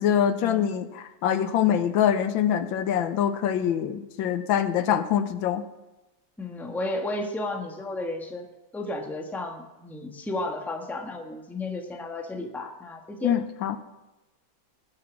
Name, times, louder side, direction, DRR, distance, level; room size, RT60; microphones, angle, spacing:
voice 1, 0.0-5.6 13.2-13.7, left 9 dB, 90° left, 12 dB, 1.6 m, -24 dB
voice 2, 6.4-8.5 8.7-13.4, left 2 dB, ahead, 4 dB, 0.9 m, -33 dB
19.5 x 6.6 x 6.3 m, 1.0 s
omnidirectional pair, 2.1 m